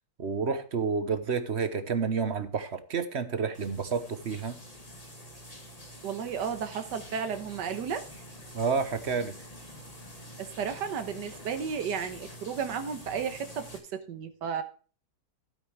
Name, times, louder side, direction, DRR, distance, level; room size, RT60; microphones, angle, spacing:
voice 1, 0.2-4.6 8.5-9.3, right 5 dB, 45° right, 1.2 m, -30 dB
sound 1, 3.5-13.8, equal, 20° left, 2.1 m, -47 dB
voice 2, 6.0-8.1 10.4-13.7 13.9-14.6, right 7 dB, 80° right, 1.7 m, -33 dB
12.5 x 9.0 x 3.4 m
omnidirectional pair, 1.8 m